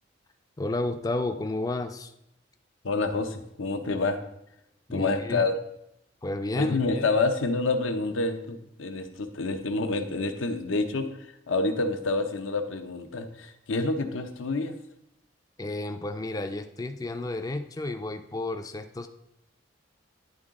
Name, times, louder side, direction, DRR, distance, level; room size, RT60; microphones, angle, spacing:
voice 1, 0.6-2.1 4.9-5.4 6.2-6.8 15.6-19.1, left 2 dB, 20° left, 8 dB, 0.3 m, -31 dB
voice 2, 2.8-4.2 4.9-5.5 6.6-11.1 11.5-14.8, left 3 dB, 85° left, 7 dB, 0.7 m, -28 dB
10.5 x 3.8 x 3.7 m, 0.80 s
head